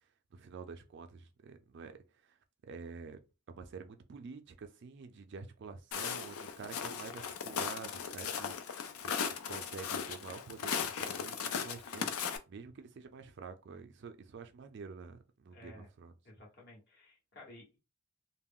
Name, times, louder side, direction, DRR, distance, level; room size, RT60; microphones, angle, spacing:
voice 1, 0.3-2.4 2.6-3.2 3.5-8.6 9.0-9.1 9.5-12.1 12.5-16.1, right 5 dB, 55° right, 0.4 m, -48 dB
Walk footsteps, 5.9-12.4, left 7 dB, 85° left, 0.4 m, -37 dB
voice 2, 15.5-15.9 16.2-17.8, left 1 dB, 50° left, 1.1 m, -54 dB
2.3 x 2.0 x 3.6 m
head